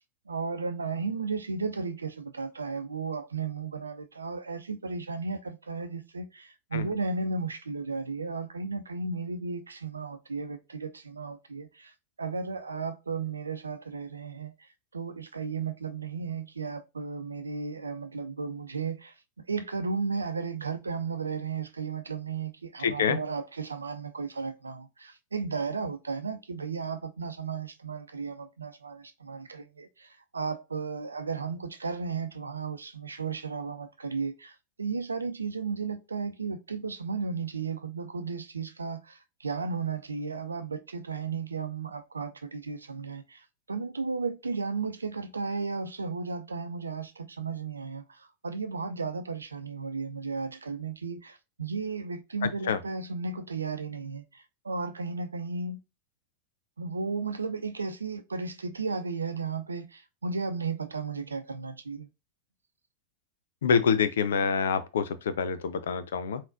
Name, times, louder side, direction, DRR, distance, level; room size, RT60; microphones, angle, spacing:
voice 1, 0.3-11.9 12.2-55.8 56.8-62.1, right 4 dB, 75° right, 0.6 m, -34 dB
voice 2, 22.8-23.2 52.4-52.8 63.6-66.4, left 6 dB, 60° left, 0.6 m, -26 dB
4.3 x 3.9 x 2.5 m
figure-of-eight pair, 90°, 0 cm